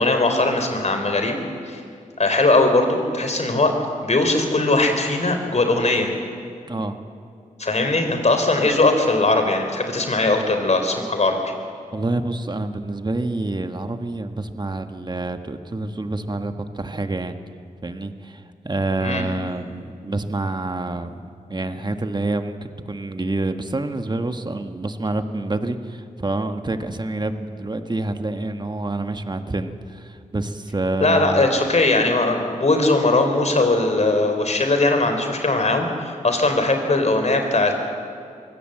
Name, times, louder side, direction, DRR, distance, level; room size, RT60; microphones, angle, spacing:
voice 1, 0.0-1.4 1.7-1.8 2.2-3.8 4.0-6.1 7.6-11.4 19.0-19.2 31.0-37.9, left 2 dB, 50° left, 5 dB, 3.7 m, -20 dB
voice 2, 11.9-17.3 17.8-21.2 21.5-31.5, right 2 dB, 30° right, 7 dB, 1.6 m, -27 dB
24.0 x 16.0 x 7.8 m, 2.3 s
cardioid pair, 45°, 15 cm